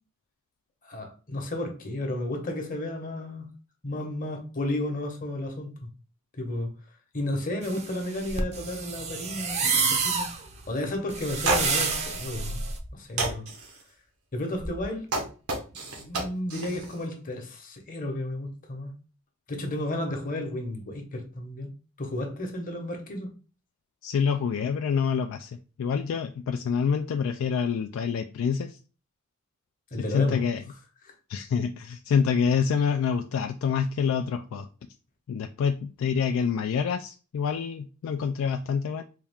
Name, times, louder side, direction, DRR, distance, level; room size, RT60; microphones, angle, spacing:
voice 1, 0.8-3.5 3.8-5.7 6.4-6.7 7.1-10.3 10.7-12.6 12.9-13.4 14.3-15.1 15.7-18.9 19.5-21.7 22.0-23.3 29.9-30.4 31.0-31.1, left 1 dB, 40° left, 0.9 m, -32 dB
sound 1, 7.6-12.8, right 5 dB, 30° right, 0.6 m, -29 dB
sound 2, 11.5-12.0 12.6-12.9 13.2-13.7 14.6-16.9, right 2 dB, 85° right, 1.1 m, -30 dB
voice 2, 24.0-28.8 30.0-30.6 31.3-34.7 35.3-39.0, left 6 dB, 65° left, 0.3 m, -27 dB
4.1 x 2.4 x 3.4 m
head